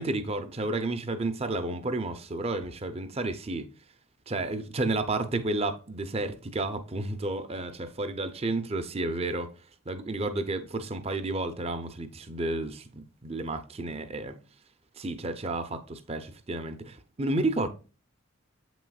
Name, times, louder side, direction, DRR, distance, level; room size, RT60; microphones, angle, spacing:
voice 1, 0.0-3.7 4.3-9.5 9.9-14.4 15.0-17.7, right 2 dB, 30° right, 0.6 m, -31 dB
8.1 x 6.1 x 2.3 m
head